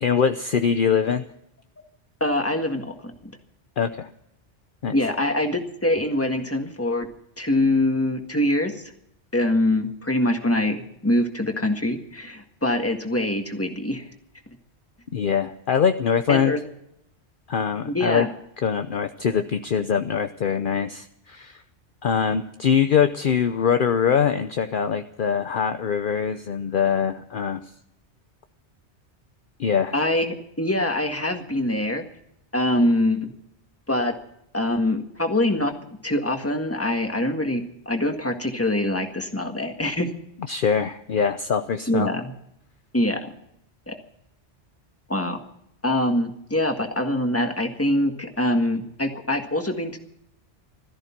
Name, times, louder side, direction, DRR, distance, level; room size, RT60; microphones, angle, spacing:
voice 1, 0.0-1.2 3.8-4.1 4.8-4.9 15.1-16.5 17.5-18.3 18.6-21.6 22.0-27.6 29.6-29.9 40.5-42.1, left 7 dB, 55° left, 9 dB, 0.8 m, -23 dB
voice 2, 2.2-2.9 3.2-3.3 4.9-7.1 7.4-8.8 9.3-14.0 16.3-16.6 17.9-18.3 29.9-32.0 32.5-33.3 33.9-34.1 34.5-35.7 36.0-40.1 41.9-42.3 42.9-43.3 43.9-44.0 45.1-45.4 45.8-50.0, left 1 dB, 10° left, 4 dB, 1.7 m, -24 dB
17.0 x 14.0 x 5.9 m, 0.75 s
omnidirectional pair, 1.2 m